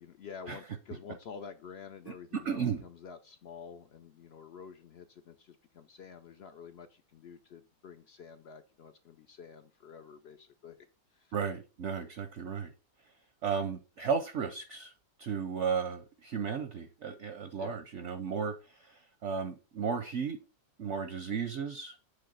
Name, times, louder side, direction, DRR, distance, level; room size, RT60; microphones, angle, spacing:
voice 1, 0.0-10.9 11.1-11.3 17.6-17.8, left 6 dB, 65° left, 9 dB, 0.6 m, -49 dB
voice 2, 2.1-2.8 11.3-12.7 13.4-14.9 15.2-20.4 20.8-22.0, right 6 dB, 60° right, 8 dB, 0.8 m, -34 dB
7.8 x 3.3 x 5.4 m, 0.31 s
omnidirectional pair, 1.8 m